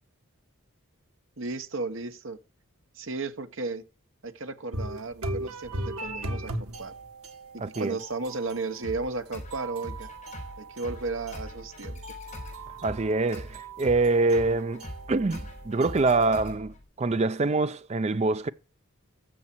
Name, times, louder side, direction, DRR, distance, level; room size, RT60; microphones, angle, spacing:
voice 1, 1.4-2.4 2.9-3.8 4.2-6.9 7.5-10.1 10.6-12.0, right 3 dB, 60° right, 1.2 m, -34 dB
sound 1, 4.7-16.2, right 1 dB, 90° right, 1.6 m, -39 dB
voice 2, 7.6-8.0 12.8-18.5, right 3 dB, 30° right, 0.5 m, -25 dB
sound 2, 8.8-16.8, equal, 35° left, 4.3 m, -42 dB
12.5 x 7.5 x 4.5 m
head